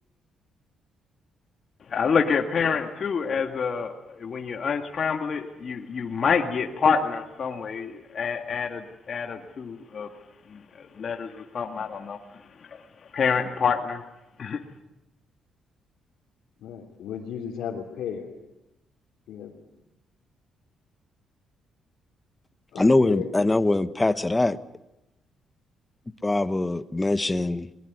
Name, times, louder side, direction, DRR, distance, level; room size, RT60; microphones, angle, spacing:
voice 1, 1.9-10.1 10.5-12.2 13.1-14.0 14.4-14.6, left 6 dB, 50° left, 4 dB, 2.0 m, -27 dB
voice 2, 16.6-18.3 19.3-19.5 22.7-23.3, left 8 dB, 80° left, -3 dB, 3.3 m, -35 dB
voice 3, 22.8-24.6 26.2-27.7, left 2 dB, 15° left, 13 dB, 1.1 m, -22 dB
22.0 x 21.0 x 9.5 m, 0.91 s
cardioid pair, 90°, 0 cm